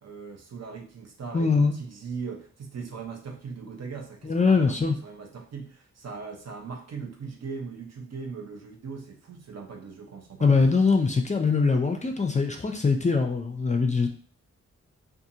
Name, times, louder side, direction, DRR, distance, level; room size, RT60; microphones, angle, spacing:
voice 1, 0.0-10.6, right 5 dB, 60° right, 2 dB, 0.7 m, -39 dB
voice 2, 1.3-1.8 4.2-5.0 10.4-14.1, left 4 dB, 25° left, 4 dB, 0.4 m, -22 dB
2.5 x 2.4 x 2.7 m, 0.43 s
cardioid pair, 65°, 30 cm